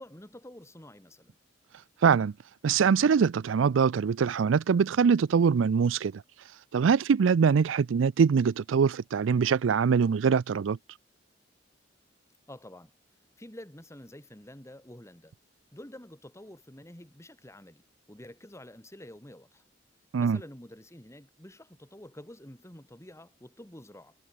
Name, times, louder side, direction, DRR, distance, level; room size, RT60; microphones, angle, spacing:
voice 1, 0.0-1.4 12.5-12.9 13.4-15.3 15.7-17.8 18.1-19.6 20.2-24.1, left 1 dB, 15° left, 2.8 m, -48 dB
voice 2, 2.0-2.3 2.6-6.2 6.7-10.8 20.1-20.4, right 6 dB, 90° right, 0.4 m, -23 dB
head